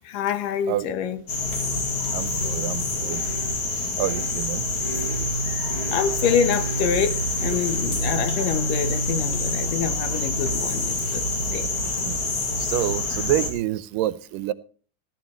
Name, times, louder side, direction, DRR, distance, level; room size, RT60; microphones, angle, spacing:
voice 1, 0.0-1.2 5.9-11.2 11.5-11.7, left 8 dB, 80° left, 2.8 m, -26 dB
sound 1, 1.3-13.5, left 2 dB, 40° left, 3.0 m, -26 dB
voice 2, 2.1-3.2 4.0-4.6 12.0-12.2 12.6-14.5, right 13 dB, 85° right, 2.4 m, -27 dB
17.5 x 12.0 x 3.1 m
omnidirectional pair, 3.8 m